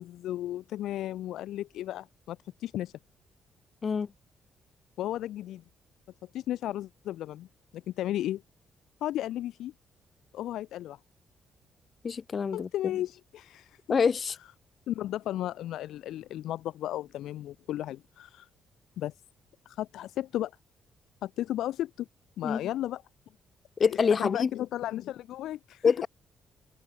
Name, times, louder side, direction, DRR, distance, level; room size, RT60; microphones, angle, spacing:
voice 1, 0.0-2.9 5.0-5.6 6.3-7.5 7.7-8.4 9.0-9.7 10.3-11.0 12.5-13.8 14.9-18.5 19.0-19.1 19.6-20.5 21.2-22.1 22.4-23.0 23.8-23.9 24.2-25.9, left 13 dB, 80° left, 1.2 m, -34 dB
voice 2, 12.0-12.7 13.9-14.4 22.4-22.6 23.8-24.5 25.8-26.1, left 6 dB, 45° left, 0.4 m, -25 dB
open air
supercardioid pair, 65°, 0 cm